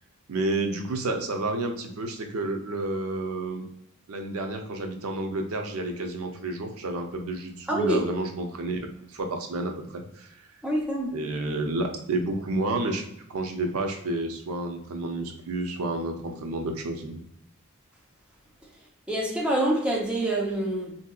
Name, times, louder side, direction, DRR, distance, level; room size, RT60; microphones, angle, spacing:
voice 1, 0.3-3.6 4.1-8.8 9.1-10.3 11.1-17.2, right 2 dB, 85° right, 0.5 m, -30 dB
voice 2, 7.7-8.1 10.6-11.2 19.1-21.0, right 1 dB, 5° right, 0.6 m, -26 dB
3.5 x 2.7 x 2.3 m
head